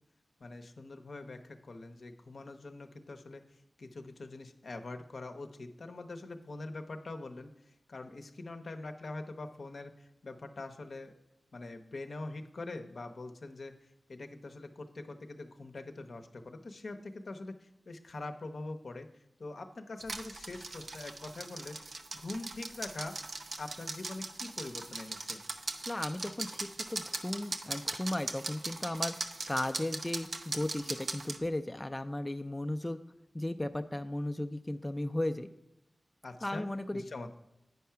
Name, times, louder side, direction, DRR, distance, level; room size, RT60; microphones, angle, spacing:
voice 1, 0.4-3.4 3.8-11.1 11.5-19.1 19.4-21.8 22.1-23.2 23.6-25.4 36.2-36.6 36.9-37.3, left 2 dB, 70° left, 6 dB, 0.7 m, -44 dB
sound 1, 20.0-31.4, right 3 dB, 75° right, 0.6 m, -40 dB
voice 2, 25.9-29.1 29.5-33.0 33.3-35.5 36.4-37.0, left 1 dB, 20° left, 7 dB, 0.4 m, -35 dB
9.5 x 4.6 x 5.7 m, 0.85 s
cardioid pair, 40°, 0 cm